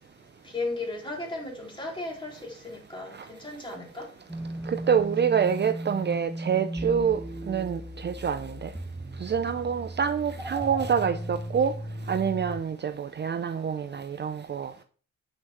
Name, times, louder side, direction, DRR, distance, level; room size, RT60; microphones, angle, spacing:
voice 1, 0.4-4.1, left 2 dB, 15° left, 3.9 m, -35 dB
sound 1, 4.3-12.6, right 1 dB, ahead, 0.9 m, -36 dB
voice 2, 4.7-7.2 7.5-8.7 9.2-11.7 12.1-14.7, right 7 dB, 35° right, 0.6 m, -26 dB
8.9 x 6.2 x 4.3 m
cardioid pair, 90°, 30 cm